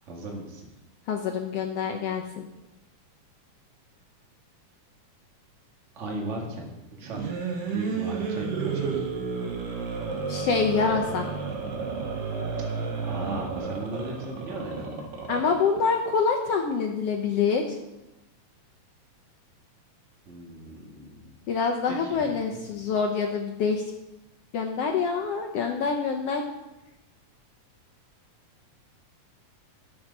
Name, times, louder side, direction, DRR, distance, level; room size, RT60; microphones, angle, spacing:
voice 1, 0.0-0.6 5.9-6.6 7.0-9.1 13.0-15.1 20.2-21.3 21.9-22.3 22.7-22.8, right 1 dB, 25° right, 0 dB, 1.8 m, -37 dB
voice 2, 1.1-2.4 10.3-11.2 15.3-17.8 21.5-23.8 24.5-26.4, left 5 dB, 80° left, 2 dB, 1.4 m, -26 dB
sound 1, 7.0-15.8, right 5 dB, 85° right, 3.1 m, -31 dB
10.5 x 7.7 x 5.3 m, 0.96 s
omnidirectional pair, 3.8 m